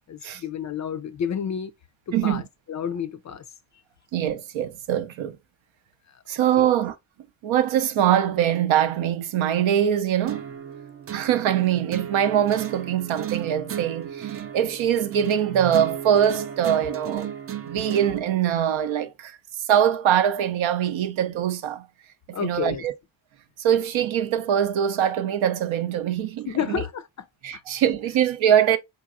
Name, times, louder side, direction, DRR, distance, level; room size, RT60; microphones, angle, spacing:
voice 1, 0.1-1.7 2.1-3.4 6.1-6.2 6.6-6.7 22.3-22.9 26.5-27.3 27.5-27.6, left 8 dB, 40° left, 0.4 m, -30 dB
voice 2, 2.1-2.4 4.1-5.4 6.3-7.0 7.4-10.6 11.1-17.3 17.6-19.4 19.6-21.9 22.3-22.9 23.6-26.8 27.4-28.8, right 10 dB, 70° right, 0.6 m, -23 dB
sound 1, 10.3-18.3, right 10 dB, 30° right, 0.4 m, -34 dB
3.8 x 2.9 x 2.4 m
supercardioid pair, 45°, 48 cm